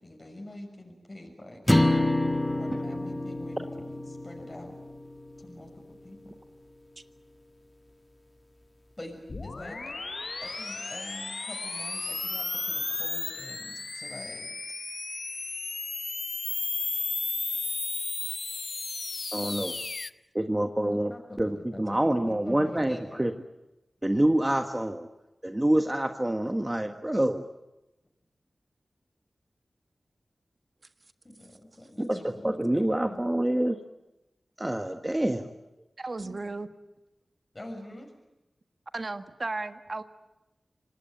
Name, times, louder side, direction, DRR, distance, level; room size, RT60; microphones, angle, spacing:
voice 1, 0.0-1.6 2.6-4.8 5.4-5.7 6.0-6.3 9.0-9.9 10.4-14.5 20.6-23.2 31.2-33.3 36.2-36.4 37.5-38.1, left 1 dB, 35° left, 2 dB, 6.2 m, -44 dB
sound 1, 1.7-6.0, left 1 dB, 15° left, 1.6 m, -28 dB
sound 2, 9.3-20.1, left 3 dB, 60° left, 0.8 m, -34 dB
voice 2, 19.3-19.8 20.3-21.1 21.4-23.3 24.0-25.1 25.4-27.4 32.4-33.8 34.6-35.5, right 1 dB, 20° right, 6 dB, 1.5 m, -26 dB
voice 3, 36.0-36.7 38.9-40.0, right 3 dB, 50° right, 9 dB, 1.6 m, -34 dB
26.0 x 19.0 x 9.3 m, 0.97 s
cardioid pair, 50°, 0 cm